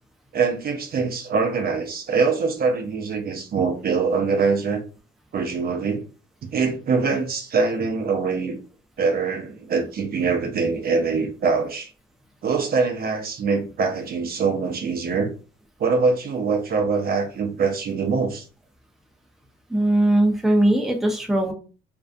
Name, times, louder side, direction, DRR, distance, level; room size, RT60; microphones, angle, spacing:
voice 1, 0.3-4.8 5.3-6.1 6.5-8.6 9.0-11.9 12.4-15.3 15.8-18.5, right 4 dB, 50° right, 0.5 m, -23 dB
voice 2, 19.7-21.5, right 1 dB, ahead, 0.5 m, -19 dB
2.6 x 2.3 x 2.2 m
cardioid pair, 90°, 20 cm